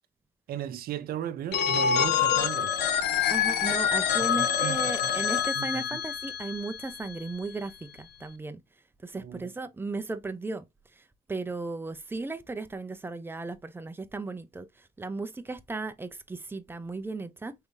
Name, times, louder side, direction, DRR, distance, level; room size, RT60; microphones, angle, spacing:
voice 1, 0.5-2.7 4.2-5.3 5.6-5.8 9.1-9.5, right 10 dB, 60° right, 0.7 m, -36 dB
Telephone, 1.5-7.3, left 8 dB, 75° left, 0.8 m, -26 dB
voice 2, 3.3-8.6 9.0-10.6 11.0-11.1 11.3-17.5, right 3 dB, 15° right, 0.6 m, -36 dB
4.6 x 3.5 x 2.7 m
cardioid pair, 110°, 17 cm